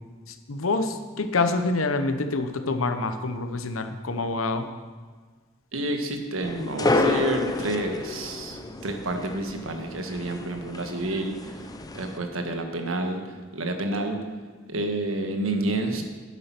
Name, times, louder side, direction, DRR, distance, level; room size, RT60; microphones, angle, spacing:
voice 1, 0.3-4.7, left 3 dB, 90° left, 9 dB, 0.9 m, -26 dB
voice 2, 5.7-11.6 11.9-13.2 13.5-14.2 14.7-16.0, right 2 dB, 85° right, 5 dB, 1.4 m, -29 dB
sound 1, 6.4-12.2, left 2 dB, 20° left, 0.6 m, -30 dB
9.9 x 8.6 x 5.9 m, 1.5 s
head